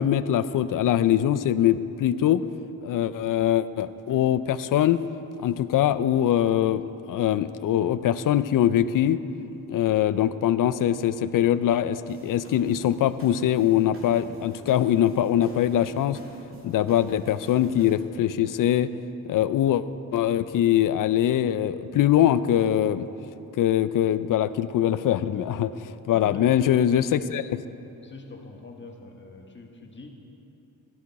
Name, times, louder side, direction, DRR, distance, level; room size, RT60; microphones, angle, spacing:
voice 1, 0.0-2.4 2.8-5.0 5.4-9.2 9.7-16.2 16.6-18.9 19.2-23.1 23.6-27.6, left 11 dB, 70° left, 14 dB, 0.5 m, -23 dB
sound 1, 12.0-17.9, right 1 dB, 40° right, 2.7 m, -48 dB
voice 2, 26.1-26.6 27.0-27.3 28.0-30.1, left 3 dB, 35° left, 2 dB, 1.5 m, -43 dB
14.5 x 11.0 x 4.1 m, 2.8 s
cardioid pair, 95°, 34 cm